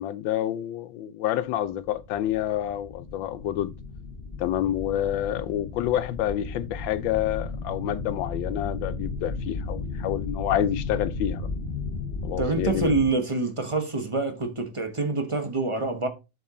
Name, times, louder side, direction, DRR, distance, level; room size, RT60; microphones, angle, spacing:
voice 1, 0.0-3.7 4.4-11.5 12.2-12.9, left 12 dB, 85° left, 1.4 m, -28 dB
sound 1, 1.9-13.1, left 3 dB, 35° left, 1.1 m, -34 dB
voice 2, 12.4-16.1, right 3 dB, 20° right, 0.8 m, -26 dB
7.0 x 6.6 x 3.7 m
omnidirectional pair, 2.0 m